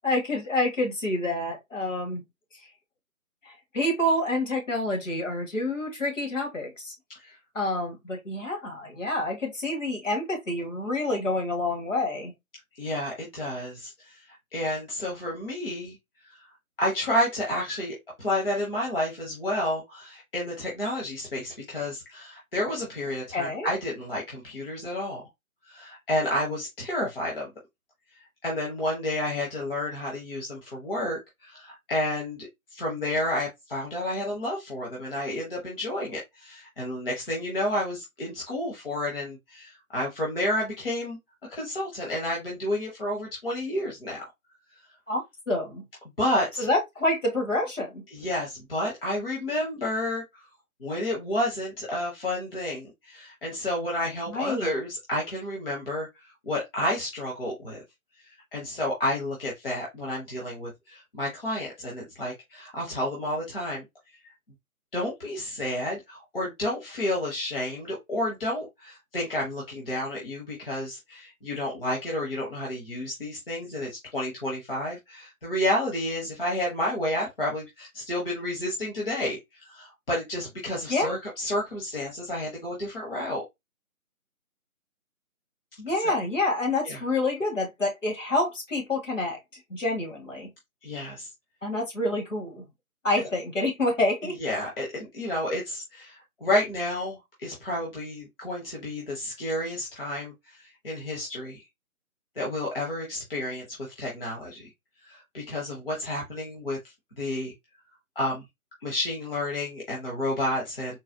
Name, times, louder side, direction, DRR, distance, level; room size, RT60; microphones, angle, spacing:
voice 1, 0.0-2.2 3.4-6.9 7.5-12.3 23.3-23.7 45.1-45.8 46.6-48.0 54.3-54.7 80.9-81.2 85.8-89.4 89.7-90.5 91.6-92.6 93.0-94.4, left 2 dB, 60° left, 1.6 m, -28 dB
voice 2, 12.7-16.0 16.3-16.4 16.8-25.2 25.7-27.5 28.4-41.2 41.5-44.2 46.2-46.7 48.1-50.4 50.8-57.8 58.3-63.8 64.9-83.4 86.0-86.1 86.8-87.0 90.8-91.3 94.2-101.6 102.4-104.7 105.0-107.5 108.1-108.4 108.8-111.0, left 1 dB, 40° left, 1.0 m, -30 dB
3.9 x 2.1 x 2.6 m
figure-of-eight pair, 150°, 43 cm